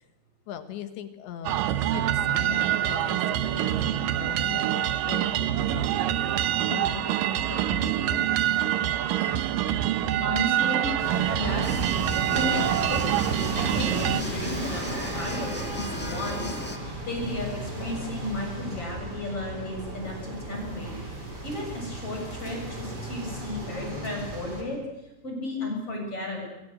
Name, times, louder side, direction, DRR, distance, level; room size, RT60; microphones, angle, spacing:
voice 1, 0.5-6.4 6.7-8.3, left 9 dB, 75° left, 10 dB, 3.6 m, -40 dB
sound 1, 1.5-14.2, right 12 dB, 70° right, 2.1 m, -26 dB
voice 2, 9.9-10.9 11.3-11.9 12.3-12.6 12.9-13.3 13.6-24.8 25.2-26.5, left 1 dB, 30° left, 1 dB, 7.7 m, -34 dB
traffic heavy under Brooklyn bridge +train pass overhead, 11.0-24.6, right 1 dB, 20° right, 5.7 m, -35 dB
sound 2, 11.6-16.8, equal, 15° left, 0.4 m, -37 dB
24.5 x 22.5 x 8.0 m, 0.97 s
omnidirectional pair, 5.2 m